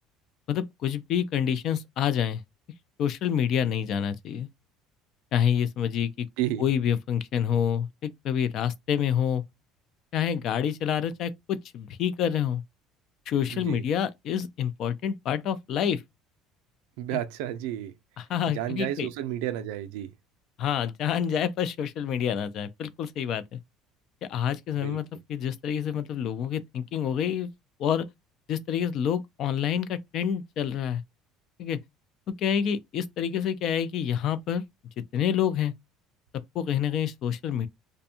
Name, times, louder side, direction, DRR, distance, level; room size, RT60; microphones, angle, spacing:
voice 1, 0.5-2.4 3.0-4.5 5.3-6.3 6.6-9.4 10.1-12.6 13.3-16.0 18.2-19.1 20.6-23.6 24.3-27.5 27.8-28.1 28.5-31.0 31.6-31.8 32.4-34.6 35.1-35.7 36.5-37.7, left 9 dB, 55° left, 0.4 m, -27 dB
voice 2, 13.5-13.8 17.0-17.9 18.5-20.1 24.8-25.0, right 12 dB, 85° right, 0.4 m, -31 dB
2.5 x 2.2 x 2.7 m
cardioid pair, 125°, 0 cm